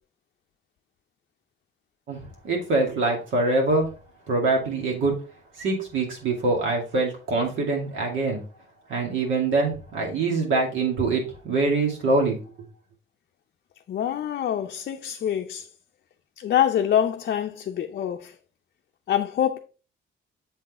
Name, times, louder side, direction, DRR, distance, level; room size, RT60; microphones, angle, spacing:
voice 1, 2.1-3.9 4.3-5.1 5.6-8.4 8.9-12.4, right 3 dB, 75° right, 2.2 m, -24 dB
voice 2, 13.9-15.7 16.4-18.3 19.1-19.6, left 10 dB, 55° left, 0.5 m, -25 dB
7.3 x 3.8 x 3.6 m
cardioid pair, 90°, 20 cm